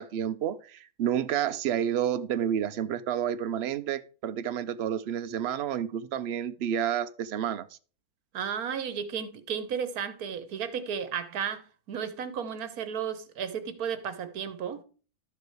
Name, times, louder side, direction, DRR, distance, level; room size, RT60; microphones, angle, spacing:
voice 1, 0.0-7.7, right 9 dB, 55° right, 0.8 m, -30 dB
voice 2, 8.3-14.8, right 7 dB, 75° right, 1.5 m, -34 dB
12.0 x 4.9 x 4.7 m
omnidirectional pair, 1.6 m